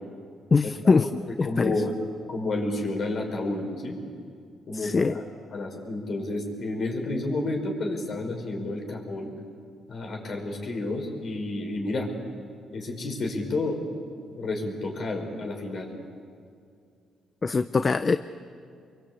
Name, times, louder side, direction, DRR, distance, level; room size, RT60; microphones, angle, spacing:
voice 1, 0.5-1.1 1.4-1.8 4.7-5.2 17.4-18.2, left 4 dB, 35° left, 11 dB, 0.7 m, -22 dB
voice 2, 1.4-1.9 2.3-4.0 4.7-5.2 5.5-9.3 9.9-12.1 12.7-13.8 14.3-15.9, left 2 dB, 55° left, 2 dB, 5.8 m, -30 dB
26.5 x 23.5 x 8.5 m, 2.3 s
cardioid pair, 90°, 0 cm